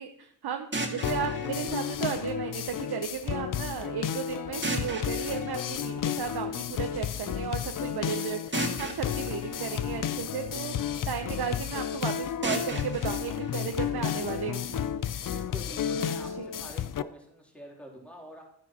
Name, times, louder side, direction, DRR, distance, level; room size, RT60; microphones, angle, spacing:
voice 1, 0.0-10.7 11.1-14.9 16.4-16.5, right 8 dB, 70° right, 5 dB, 0.8 m, -35 dB
sound 1, 0.7-2.7 4.6-6.6 8.5-10.7 12.4-14.5, right 2 dB, 30° right, 2.1 m, -37 dB
sound 2, 1.0-17.0, left 9 dB, 55° left, 0.5 m, -32 dB
voice 2, 15.3-18.4, equal, 5° left, -2 dB, 3.1 m, -46 dB
11.0 x 9.2 x 2.9 m, 0.77 s
supercardioid pair, 40°, 40 cm